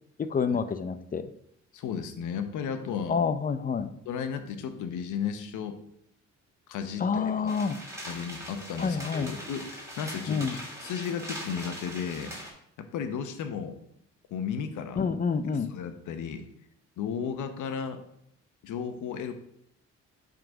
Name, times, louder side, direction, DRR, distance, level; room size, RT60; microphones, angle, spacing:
voice 1, 0.2-1.3 3.1-3.9 7.0-7.8 8.8-9.3 10.3-10.6 15.0-15.7, left 5 dB, 30° left, 12 dB, 0.5 m, -28 dB
voice 2, 1.7-3.2 4.1-5.8 6.7-7.5 8.0-12.3 12.8-13.8 14.3-15.0 15.7-16.5 17.0-18.0 18.6-19.3, left 7 dB, 80° left, 8 dB, 0.9 m, -34 dB
sound 1, 7.5-12.5, equal, 10° right, 2.7 m, -41 dB
7.7 x 4.0 x 4.7 m, 0.75 s
cardioid pair, 90°, 30 cm